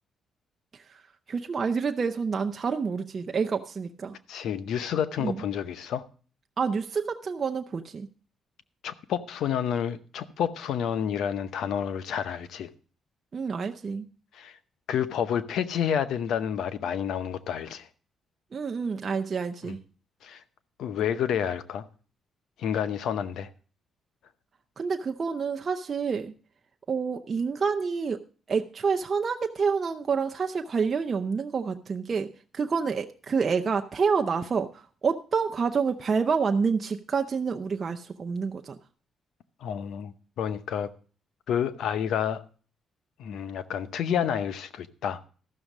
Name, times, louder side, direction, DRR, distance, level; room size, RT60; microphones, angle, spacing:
voice 1, 1.3-4.2 5.2-5.4 6.6-8.1 13.3-14.1 18.5-19.8 24.8-26.3 26.9-28.2 28.5-38.8, right 5 dB, 40° right, 0.7 m, -28 dB
voice 2, 4.3-6.0 8.8-12.7 14.3-14.6 14.9-17.9 19.6-19.7 20.2-20.4 20.8-21.8 22.6-23.5 39.6-40.9 41.5-42.4 43.2-45.2, left 8 dB, 75° left, 0.8 m, -29 dB
13.5 x 6.3 x 6.0 m
cardioid pair, 90°, 0 cm